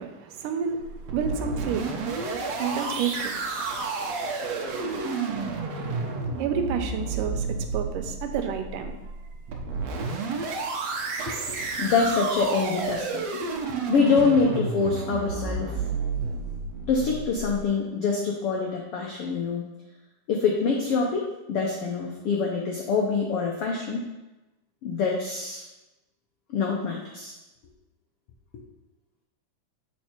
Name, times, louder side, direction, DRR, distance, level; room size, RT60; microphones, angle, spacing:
voice 1, 0.0-3.5 6.4-9.0 11.2-11.3, right 7 dB, 90° right, 6 dB, 2.3 m, -30 dB
sound 1, 0.8-17.6, right 4 dB, 70° right, 1.7 m, -31 dB
voice 2, 11.4-15.8 16.9-19.7 20.3-24.1 24.8-25.6 26.5-27.3, left 4 dB, 85° left, -1 dB, 1.2 m, -25 dB
7.6 x 4.6 x 4.4 m, 1.0 s
omnidirectional pair, 3.7 m